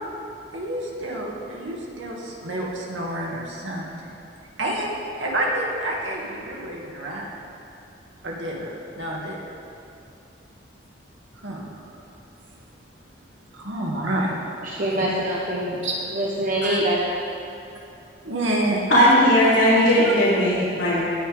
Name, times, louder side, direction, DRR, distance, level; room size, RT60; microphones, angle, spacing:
voice 1, 0.5-3.9 4.6-7.3 8.2-9.4 11.4-12.0 13.5-14.3 15.8-16.0 16.6-16.8 18.2-18.8, right 1 dB, 85° right, -3 dB, 2.3 m, -28 dB
voice 2, 14.6-15.8 16.1-17.0, right 1 dB, 45° right, -5 dB, 1.2 m, -24 dB
voice 3, 18.9-21.0, equal, 85° left, -11 dB, 3.5 m, -17 dB
19.5 x 9.1 x 3.6 m, 2.6 s
head